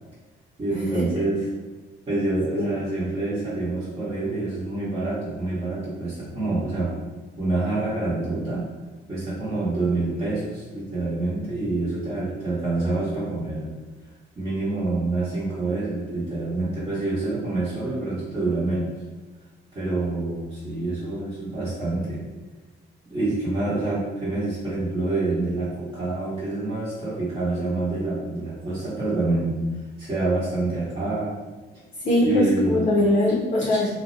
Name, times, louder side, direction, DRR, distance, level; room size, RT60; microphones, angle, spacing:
voice 1, 0.6-1.4 2.1-7.0 7.4-8.7 9.1-13.7 14.4-18.9 19.7-22.2 23.1-29.5 30.0-31.4 32.2-32.9, right 2 dB, 30° right, -11 dB, 0.9 m, -26 dB
voice 2, 32.0-33.9, left 1 dB, 40° left, -4 dB, 0.5 m, -21 dB
2.4 x 2.0 x 2.6 m, 1.3 s
cardioid pair, 90°, 20 cm